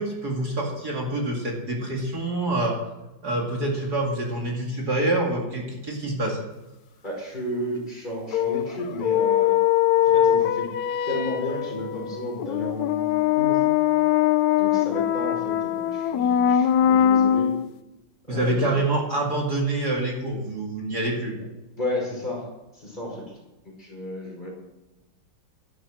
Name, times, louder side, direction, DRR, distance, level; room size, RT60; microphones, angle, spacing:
voice 1, 0.0-2.8 3.2-6.4 18.3-21.5, right 2 dB, 50° right, -1 dB, 2.7 m, -26 dB
voice 2, 7.0-9.6 10.0-10.7 11.1-13.1 13.4-13.7 14.6-17.6 18.3-18.8 21.8-23.4 23.6-24.5, left 1 dB, 20° left, -2 dB, 5.3 m, -33 dB
sound 1, 8.3-17.7, left 10 dB, 85° left, 0.8 m, -22 dB
12.5 x 12.0 x 6.4 m, 1.0 s
omnidirectional pair, 2.3 m